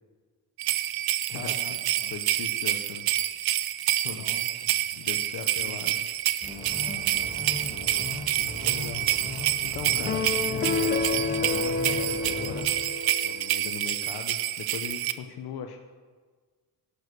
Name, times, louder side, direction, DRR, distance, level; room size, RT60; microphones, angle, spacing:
sound 1, 0.6-15.1, right 13 dB, 75° right, 0.7 m, -28 dB
voice 1, 1.3-2.4 4.1-5.2 5.5-5.8 6.9-9.0 9.9-10.3, left 3 dB, 60° left, 6 dB, 1.6 m, -44 dB
voice 2, 2.1-3.1 4.0-4.3 5.0-6.0 8.6-9.1 9.6-12.7 13.2-15.8, left 8 dB, 85° left, 5 dB, 1.0 m, -39 dB
sound 2, 6.4-12.7, left 2 dB, 10° left, 2.0 m, -38 dB
sound 3, 10.1-13.6, left 4 dB, 30° left, 0.6 m, -29 dB
12.0 x 11.0 x 6.8 m, 1.5 s
cardioid pair, 175°, 37 cm